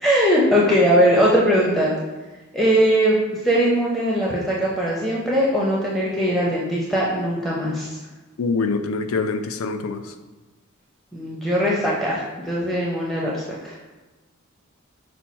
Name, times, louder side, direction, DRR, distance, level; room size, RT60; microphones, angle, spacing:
voice 1, 0.0-1.9 2.5-3.2 3.4-8.0 11.1-13.7, equal, ahead, -5 dB, 0.5 m, -20 dB
voice 2, 8.4-10.1, left 4 dB, 75° left, 8 dB, 0.4 m, -25 dB
5.8 x 2.2 x 4.1 m, 1.2 s
head